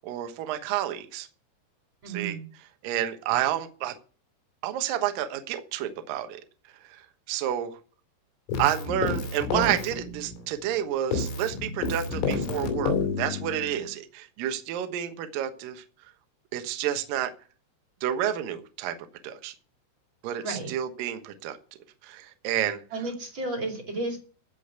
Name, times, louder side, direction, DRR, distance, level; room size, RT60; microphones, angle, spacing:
voice 1, 0.0-1.3 2.1-2.4 2.8-3.9 4.6-6.4 6.9-7.0 7.3-7.8 8.6-15.8 16.5-17.3 18.0-18.9 19.2-19.5 20.2-21.6 22.0-22.8, right 11 dB, 70° right, 8 dB, 2.1 m, -30 dB
voice 2, 2.0-2.4 20.4-20.7 22.9-24.2, right 2 dB, 35° right, 2 dB, 2.3 m, -32 dB
Keyboard (musical), 8.5-10.8 11.1-13.9, left 4 dB, 85° left, 5.4 m, -30 dB
15.5 x 5.3 x 8.1 m, 0.39 s
omnidirectional pair, 5.8 m